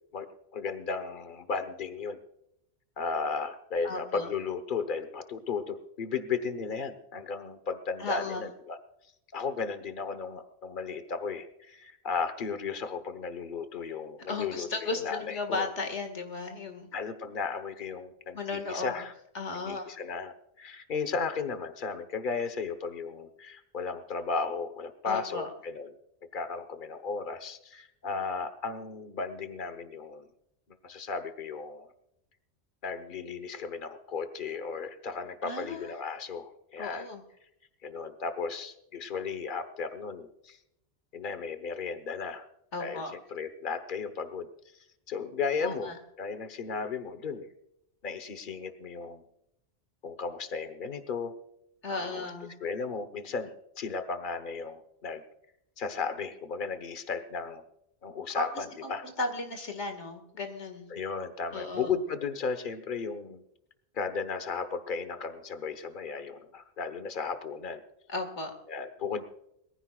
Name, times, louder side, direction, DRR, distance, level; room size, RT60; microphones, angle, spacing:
voice 1, 0.5-2.2 3.0-8.8 9.3-15.7 16.9-19.1 19.5-25.9 26.3-30.3 30.8-31.9 32.8-37.1 37.8-40.6 41.1-42.5 42.8-43.0 43.3-44.5 45.1-45.9 46.2-47.5 48.0-49.2 50.0-51.3 51.9-52.3 52.6-55.2 55.8-57.6 58.0-59.0 60.9-63.4 63.9-67.8 68.7-69.3, left 5 dB, 45° left, 10 dB, 1.3 m, -35 dB
voice 2, 3.8-4.3 8.0-8.5 14.3-16.9 18.3-19.0 19.3-20.0 25.1-25.5 35.4-35.9 36.8-37.2 42.7-43.1 45.6-46.0 51.8-52.5 58.3-60.9 61.5-61.9 68.1-68.5, left 3 dB, 90° left, 6 dB, 2.3 m, -35 dB
22.5 x 15.0 x 2.4 m, 0.78 s
omnidirectional pair, 1.2 m